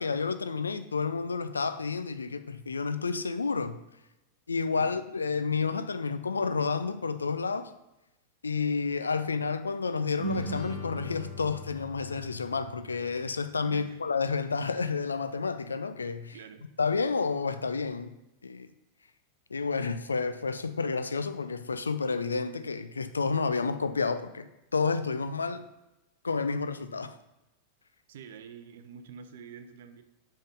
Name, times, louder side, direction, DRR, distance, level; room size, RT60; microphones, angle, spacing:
voice 1, 0.0-3.8 4.5-7.7 8.4-16.4 16.8-18.1 18.4-18.7 19.5-25.7 26.2-27.2, left 4 dB, 75° left, 0.3 m, -30 dB
sound 1, 10.2-13.8, right 1 dB, 20° left, 1.7 m, -39 dB
voice 2, 13.7-14.0 16.3-16.6 28.1-30.0, right 7 dB, 60° right, 0.5 m, -46 dB
5.2 x 3.7 x 5.1 m
figure-of-eight pair, 90°, 0 cm